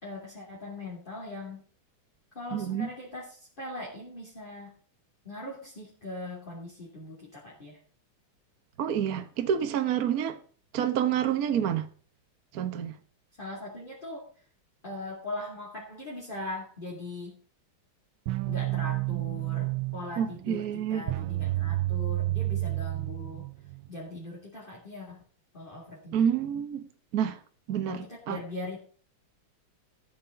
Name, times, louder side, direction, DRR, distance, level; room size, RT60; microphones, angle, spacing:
voice 1, 0.0-1.6 2.3-4.7 5.2-7.8 13.4-14.3 14.8-17.4 18.5-23.5 23.9-25.2 25.5-26.2 27.9-28.8, left 2 dB, 25° left, 3.0 m, -40 dB
voice 2, 2.5-2.9 8.8-10.4 10.7-11.9 12.5-13.0 20.2-21.0 26.1-26.9 27.1-27.4 27.7-28.4, right 9 dB, 55° right, 1.2 m, -28 dB
sound 1, 18.3-23.9, right 18 dB, 75° right, 1.3 m, -30 dB
14.0 x 6.8 x 5.5 m
omnidirectional pair, 2.2 m